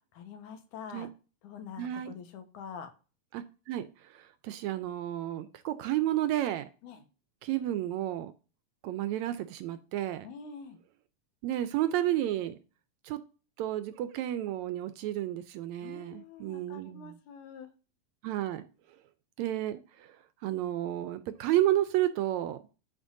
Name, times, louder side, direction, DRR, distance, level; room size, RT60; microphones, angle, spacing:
voice 1, 0.1-1.1 1.4-2.9 6.8-7.0 10.2-10.8 15.8-17.7, left 6 dB, 80° left, 6 dB, 2.6 m, -45 dB
voice 2, 1.8-2.1 3.3-6.7 7.4-8.3 8.8-10.3 11.4-12.6 13.0-13.2 13.6-17.2 18.2-18.6 19.4-20.2 20.4-22.6, right 13 dB, 80° right, 11 dB, 1.8 m, -31 dB
13.0 x 5.1 x 2.6 m, 0.34 s
omnidirectional pair, 3.6 m